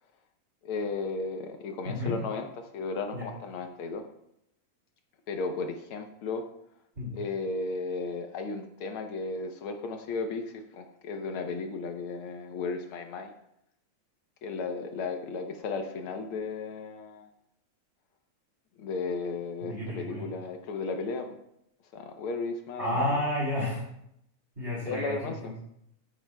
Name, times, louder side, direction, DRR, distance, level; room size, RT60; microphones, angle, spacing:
voice 1, 0.6-4.0 5.3-6.4 7.1-13.3 14.4-17.3 18.8-21.4 21.9-23.1 24.9-25.4, left 4 dB, 80° left, 5 dB, 1.2 m, -34 dB
voice 2, 1.8-2.2 3.1-3.3 7.0-7.2 19.6-20.2 22.8-23.8 24.6-25.5, left 1 dB, 25° right, -6 dB, 2.4 m, -31 dB
13.0 x 9.7 x 2.2 m, 0.77 s
omnidirectional pair, 3.4 m